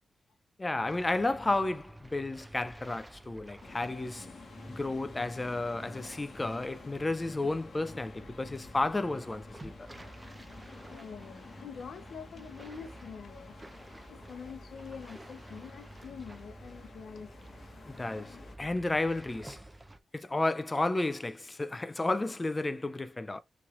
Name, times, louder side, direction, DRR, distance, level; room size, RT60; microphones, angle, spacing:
voice 1, 0.6-4.3 4.7-9.7 17.9-19.6 20.1-23.4, left 2 dB, 25° left, 0.4 m, -32 dB
sound 1, 0.8-20.0, right 1 dB, 15° right, 0.6 m, -50 dB
sound 2, 3.6-18.6, left 4 dB, 55° left, 1.0 m, -51 dB
voice 2, 10.9-13.6 14.1-17.6, left 6 dB, 85° left, 0.7 m, -46 dB
5.9 x 3.1 x 2.5 m
cardioid pair, 95°, 0 cm